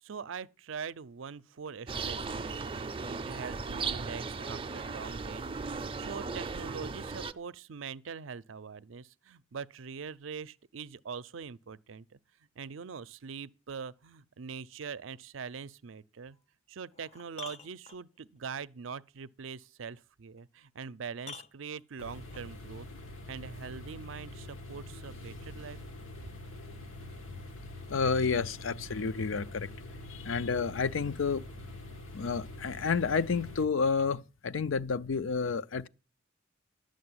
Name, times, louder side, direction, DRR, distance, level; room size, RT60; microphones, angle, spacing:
voice 1, 0.0-12.2 12.6-16.4 16.7-22.9 23.3-25.8, right 6 dB, 70° right, 0.5 m, -43 dB
sound 1, 1.9-7.3, right 4 dB, 25° right, 0.5 m, -37 dB
sound 2, 16.3-16.4 16.9-18.4 20.4-20.5 21.2-22.5 23.9-24.0, left 4 dB, 30° left, 0.6 m, -48 dB
sound 3, 22.0-33.6, left 1 dB, 90° left, 1.7 m, -45 dB
voice 2, 27.9-29.7 30.1-31.5 32.1-35.9, left 5 dB, 75° left, 0.5 m, -30 dB
12.0 x 6.5 x 9.6 m
head